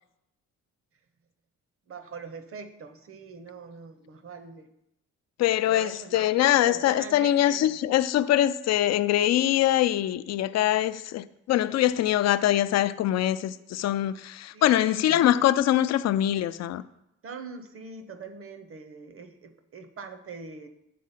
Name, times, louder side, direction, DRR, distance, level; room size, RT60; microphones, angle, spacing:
voice 1, 1.9-4.7 5.7-7.7 14.5-15.2 17.2-20.7, right 4 dB, 45° right, 0.9 m, -43 dB
voice 2, 5.4-16.8, left 12 dB, 60° left, 0.4 m, -23 dB
8.5 x 3.7 x 5.7 m
cardioid pair, 90°, 30 cm